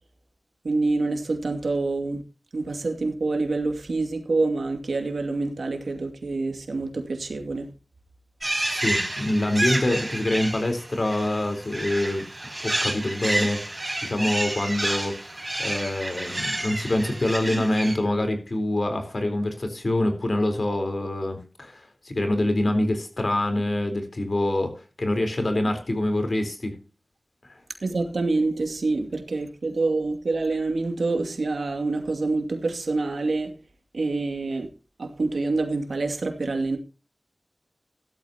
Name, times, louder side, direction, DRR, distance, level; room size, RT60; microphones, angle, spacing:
voice 1, 0.6-2.2 2.5-7.7 27.8-33.5 33.9-34.7 35.0-36.8, right 3 dB, 90° right, 2.5 m, -26 dB
sound 1, 8.4-17.9, right 1 dB, 25° right, 4.4 m, -30 dB
voice 2, 8.7-12.2 12.6-13.6 14.0-15.2 15.6-24.7 25.0-26.8, left 1 dB, 55° left, 4.0 m, -25 dB
16.5 x 12.5 x 2.9 m
wide cardioid pair, 55°, 0 cm